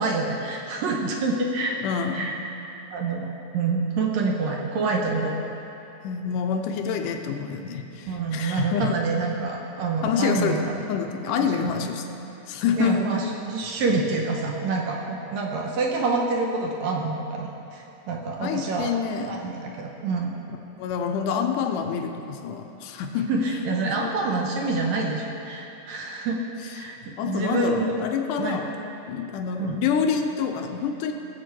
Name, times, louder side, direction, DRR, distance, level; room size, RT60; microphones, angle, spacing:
voice 1, 0.0-1.8 2.1-2.4 2.9-5.4 8.1-10.6 11.4-11.9 12.8-18.9 19.3-20.4 23.3-26.4 26.7-28.0 28.4-28.6 29.6-29.8, right 3 dB, 70° right, 0 dB, 1.9 m, -27 dB
voice 2, 1.8-2.3 6.0-9.0 10.0-13.1 18.4-19.4 20.8-23.3 24.0-24.1 27.2-28.7 29.1-31.1, left 6 dB, 90° left, 5 dB, 2.3 m, -27 dB
17.5 x 7.7 x 4.6 m, 2.9 s
omnidirectional pair, 3.7 m